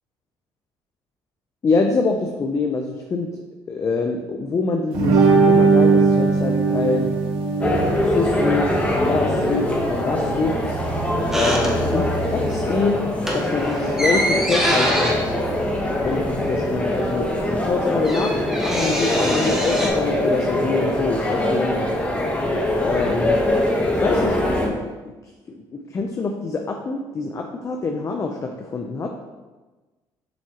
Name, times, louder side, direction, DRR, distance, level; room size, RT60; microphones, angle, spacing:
voice 1, 1.6-3.3 3.7-7.1 8.1-10.7 11.3-13.0 13.3-15.3 16.0-21.8 22.8-23.4 24.0-25.1 25.5-29.1, left 3 dB, 35° left, 2 dB, 0.6 m, -25 dB
sound 1, 4.9-12.7, right 4 dB, 80° right, 1.6 m, -21 dB
sound 2, 7.6-24.7, left 1 dB, 15° left, 1.2 m, -23 dB
sound 3, 11.3-12.3 12.6-12.8 13.1-16.6 16.9-17.0 17.2-19.9, equal, 5° right, 1.5 m, -25 dB
7.1 x 6.1 x 3.0 m, 1.2 s
cardioid pair, 110°, 9 cm